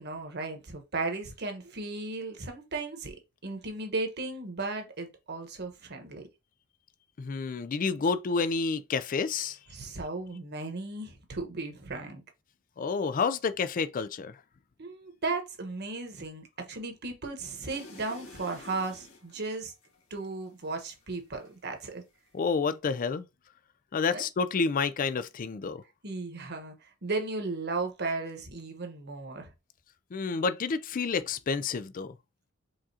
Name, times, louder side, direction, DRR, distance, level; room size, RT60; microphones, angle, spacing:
voice 1, 0.0-3.2 3.4-6.2 9.7-12.2 14.8-19.7 20.1-22.0 24.1-24.2 26.0-29.5, right 3 dB, 50° right, 1.2 m, -35 dB
voice 2, 7.2-9.6 12.8-14.4 22.3-23.3 23.9-25.8 30.1-32.1, left 5 dB, 40° left, 0.4 m, -29 dB
sound 1, 17.7-21.8 22.1-22.8, left 2 dB, 85° left, 1.8 m, -50 dB
5.0 x 3.7 x 2.8 m
head